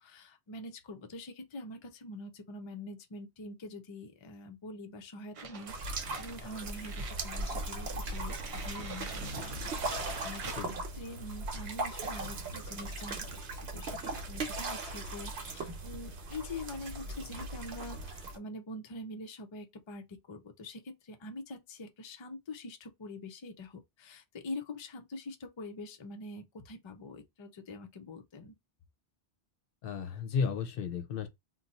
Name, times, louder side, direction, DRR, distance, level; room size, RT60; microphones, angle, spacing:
voice 1, 0.0-10.6 10.9-28.5, left 2 dB, 45° left, 0.3 m, -45 dB
sound 1, 5.3-7.2 7.6-7.7 8.1-10.7, right 5 dB, 50° right, 0.4 m, -46 dB
sound 2, 5.7-18.4, right 2 dB, 70° right, 1.0 m, -38 dB
voice 2, 29.8-31.3, left 6 dB, 60° left, 0.7 m, -33 dB
2.6 x 2.2 x 4.0 m
omnidirectional pair, 1.1 m